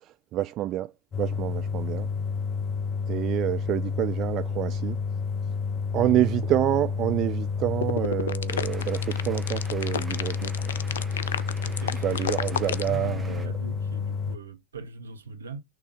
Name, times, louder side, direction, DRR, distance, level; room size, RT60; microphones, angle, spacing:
voice 1, 0.3-0.9 1.2-2.1 3.1-5.0 5.9-10.5 12.0-13.5, right 14 dB, 35° right, 0.3 m, -27 dB
sound 1, 1.1-14.4, left 5 dB, 30° left, 0.8 m, -30 dB
sound 2, 7.8-12.9, left 9 dB, 65° left, 0.4 m, -30 dB
sound 3, 8.5-13.5, right 2 dB, 10° right, 1.3 m, -46 dB
voice 2, 11.6-12.3 12.8-15.6, right 5 dB, 70° right, 1.3 m, -40 dB
6.2 x 3.4 x 5.3 m
figure-of-eight pair, 90°, 0 cm